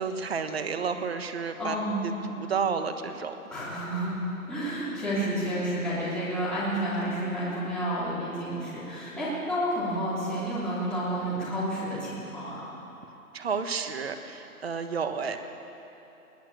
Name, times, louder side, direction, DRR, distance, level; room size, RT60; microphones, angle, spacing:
voice 1, 0.0-1.8 2.0-3.3 9.1-9.4 13.3-15.4, right 5 dB, 40° right, 8 dB, 1.4 m, -31 dB
voice 2, 1.6-2.1 3.5-12.6, right 1 dB, ahead, -11 dB, 3.2 m, -30 dB
21.0 x 18.5 x 7.2 m, 3.0 s
hypercardioid pair, 170°, 45 cm